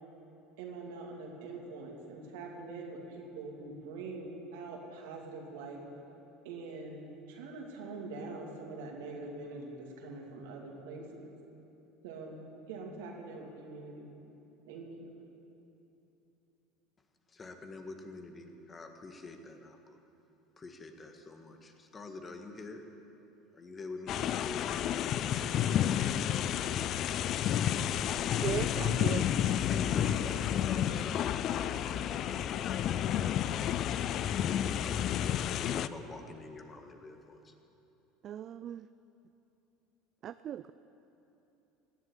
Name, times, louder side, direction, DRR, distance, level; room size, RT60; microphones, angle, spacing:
voice 1, 0.6-5.8 6.4-11.3 12.0-14.1 14.7-15.2, right 3 dB, 70° right, 0 dB, 2.5 m, -44 dB
voice 2, 17.3-20.0 20.6-22.8 23.5-25.5 29.6-35.1 35.3-37.5, left 3 dB, 25° left, 5 dB, 1.7 m, -47 dB
sound 1, 24.1-35.9, left 10 dB, 50° left, 0.5 m, -31 dB
voice 3, 28.4-29.3 38.2-38.9 40.2-40.7, right 10 dB, 45° right, 13 dB, 0.3 m, -37 dB
17.5 x 7.9 x 9.8 m, 2.9 s
hypercardioid pair, 75°, 0 cm